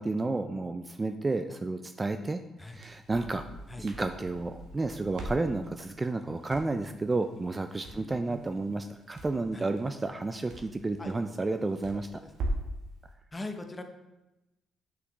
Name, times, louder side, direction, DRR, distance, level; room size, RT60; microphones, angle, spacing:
voice 1, 0.0-2.4 2.7-3.4 3.8-12.1, right 3 dB, 25° right, 8 dB, 0.3 m, -31 dB
Crackle, 2.6-12.8, right 1 dB, 80° right, 1.0 m, -42 dB
voice 2, 7.9-8.4 9.5-9.7 11.0-11.2 11.9-12.3 13.3-13.8, left 2 dB, 20° left, 5 dB, 0.8 m, -41 dB
5.9 x 5.9 x 3.0 m, 0.98 s
cardioid pair, 90°, 0 cm